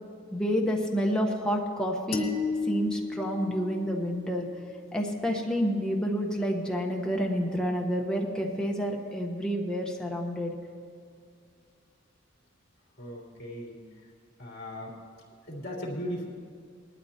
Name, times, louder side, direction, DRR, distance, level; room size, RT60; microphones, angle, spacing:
voice 1, 0.3-2.3 2.6-4.5 4.9-10.5, equal, 5° left, 0 dB, 1.1 m, -29 dB
sound 1, 2.1-4.5, left 4 dB, 85° left, 1.5 m, -33 dB
voice 2, 13.0-13.7 14.4-15.0 15.5-16.3, equal, 55° left, -4 dB, 3.2 m, -37 dB
20.0 x 12.5 x 2.9 m, 2.3 s
head